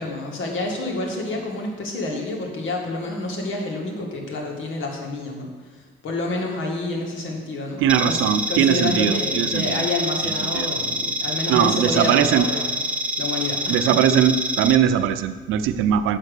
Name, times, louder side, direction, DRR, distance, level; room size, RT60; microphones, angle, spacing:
voice 1, 0.0-12.7 13.2-13.8, left 2 dB, 75° left, 1 dB, 1.9 m, -28 dB
voice 2, 7.8-9.9 10.2-10.7 11.5-12.4 13.7-16.2, right 9 dB, 90° right, 11 dB, 0.5 m, -20 dB
sound 1, 7.9-14.8, right 1 dB, 5° right, 0.5 m, -26 dB
7.5 x 6.1 x 6.6 m, 1.4 s
cardioid pair, 90°, 20 cm